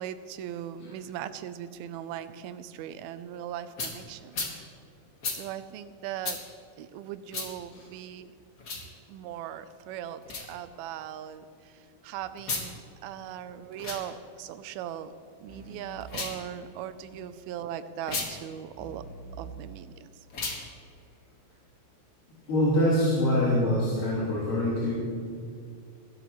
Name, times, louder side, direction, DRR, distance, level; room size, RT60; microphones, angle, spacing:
voice 1, 0.0-4.4 5.3-6.4 6.8-8.3 8.7-15.1 15.4-19.0 19.3-20.1, right 10 dB, 85° right, 12 dB, 2.5 m, -39 dB
sound 1, 3.8-3.9 4.3-4.5 5.2-5.4 6.2-6.4 7.3-7.5 8.6-8.9 10.2-10.5 12.4-12.7 13.7-14.0 16.0-16.4 18.0-18.3 20.3-20.6, left 3 dB, 90° left, 0.7 m, -33 dB
sound 2, 15.5-17.1 18.8-20.5, right 3 dB, ahead, 2.2 m, -47 dB
voice 2, 22.3-24.9, left 1 dB, 60° left, -10 dB, 4.7 m, -25 dB
21.5 x 12.0 x 3.1 m, 2.4 s
omnidirectional pair, 4.4 m